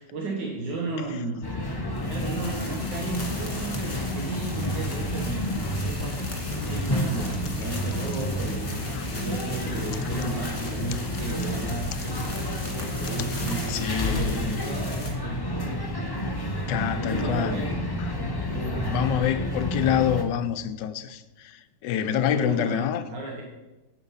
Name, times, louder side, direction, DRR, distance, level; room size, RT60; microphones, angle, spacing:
voice 1, 0.0-1.5 2.1-6.3 6.7-8.9 9.1-15.5 16.1-17.7 18.4-19.1 21.9-23.4, right 2 dB, 80° right, 2.0 m, -35 dB
sound 1, 1.4-20.2, left 1 dB, 15° left, 0.8 m, -30 dB
sound 2, 2.0-15.1, left 2 dB, 40° left, 2.5 m, -40 dB
voice 2, 13.7-14.7 16.7-17.6 18.0-18.1 18.9-23.0, left 10 dB, 85° left, 1.2 m, -27 dB
9.0 x 8.0 x 5.7 m
omnidirectional pair, 1.8 m